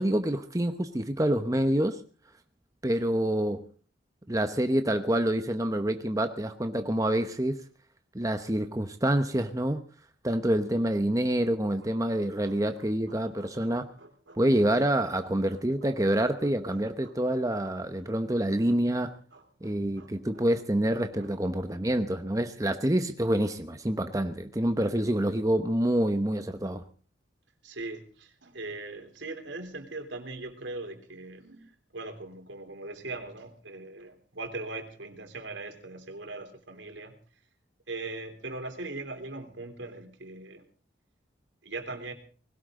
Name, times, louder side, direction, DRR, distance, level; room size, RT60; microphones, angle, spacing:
voice 1, 0.0-2.0 2.8-3.7 4.3-7.6 8.1-9.8 10.2-13.9 14.4-19.2 19.6-26.8, right 1 dB, 20° right, 1.0 m, -27 dB
voice 2, 12.1-12.5 13.1-14.4 15.8-16.2 17.0-17.1 18.0-18.1 19.3-20.4 21.2-21.3 27.6-31.7 31.9-37.1 37.9-40.6 41.6-42.1, right 2 dB, 85° right, 3.4 m, -41 dB
20.5 x 17.5 x 3.8 m
head